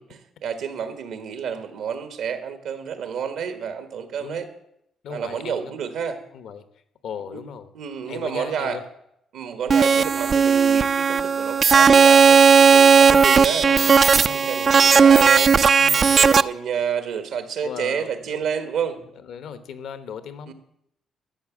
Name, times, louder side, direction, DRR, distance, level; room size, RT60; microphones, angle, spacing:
voice 1, 0.0-4.5 5.1-6.2 7.3-7.4 7.7-8.8 9.3-13.6 14.3-15.5 16.1-19.0 20.5-20.6, right 7 dB, 80° right, 8 dB, 1.5 m, -29 dB
voice 2, 5.0-5.7 6.3-6.6 7.0-7.7 8.1-8.8 13.0-15.2 15.8-16.3 17.6-18.4 19.2-20.5, left 7 dB, 75° left, 11 dB, 1.1 m, -37 dB
sound 1, 9.7-16.4, right 6 dB, 45° right, 0.4 m, -15 dB
13.0 x 7.0 x 7.4 m, 0.76 s
cardioid pair, 90°, 0 cm